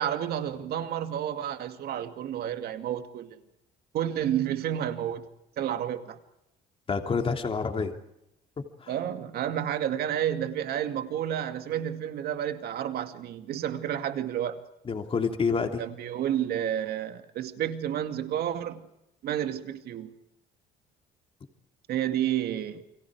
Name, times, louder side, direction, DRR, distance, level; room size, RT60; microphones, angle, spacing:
voice 1, 0.0-3.4 3.9-5.2 5.6-6.2 8.9-14.6 15.8-18.8 19.2-20.1 21.9-22.8, right 10 dB, 70° right, 2.4 m, -30 dB
voice 2, 6.9-7.9 8.6-8.9 14.9-15.8, left 5 dB, 35° left, 3.0 m, -28 dB
30.0 x 24.0 x 5.0 m
cardioid pair, 110°, 17 cm